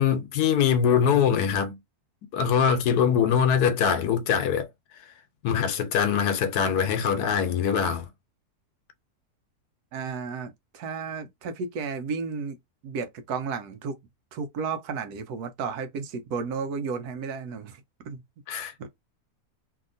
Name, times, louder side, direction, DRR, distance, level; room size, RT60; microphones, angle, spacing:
voice 1, 0.0-1.8 2.3-4.7 5.4-8.1 18.5-18.7, left 7 dB, 80° left, 1.2 m, -23 dB
voice 2, 9.9-12.6 12.8-14.0 14.3-18.2 18.8-18.9, right 5 dB, 80° right, 1.2 m, -33 dB
2.8 x 2.8 x 2.5 m
omnidirectional pair, 1.6 m